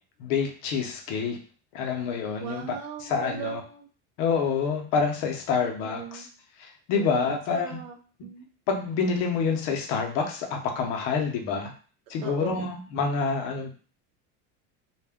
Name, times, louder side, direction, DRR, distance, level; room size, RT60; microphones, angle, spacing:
voice 1, 0.2-1.4 1.7-2.6 3.0-3.6 4.2-6.3 6.6-7.8 8.7-11.7 12.1-13.8, left 5 dB, 55° left, 3 dB, 0.6 m, -27 dB
voice 2, 2.4-3.9 5.6-6.3 6.9-8.5 12.2-12.7, right 9 dB, 70° right, 0 dB, 0.5 m, -39 dB
2.3 x 2.1 x 3.4 m, 0.40 s
cardioid pair, 180°, 37 cm